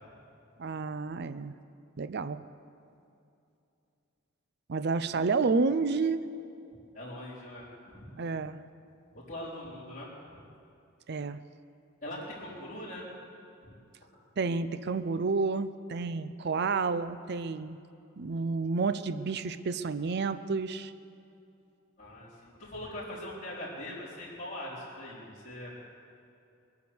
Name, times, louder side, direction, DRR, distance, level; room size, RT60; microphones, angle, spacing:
voice 1, 0.6-1.5 2.0-2.4 4.7-6.2 8.2-8.6 11.1-11.4 14.4-17.8 18.2-20.9, right 4 dB, 55° right, 13 dB, 0.5 m, -30 dB
voice 2, 6.9-8.1 9.1-10.1 12.0-13.1 13.7-13.8 22.0-25.7, left 1 dB, 35° left, -12 dB, 3.8 m, -42 dB
21.5 x 9.4 x 7.0 m, 2.6 s
head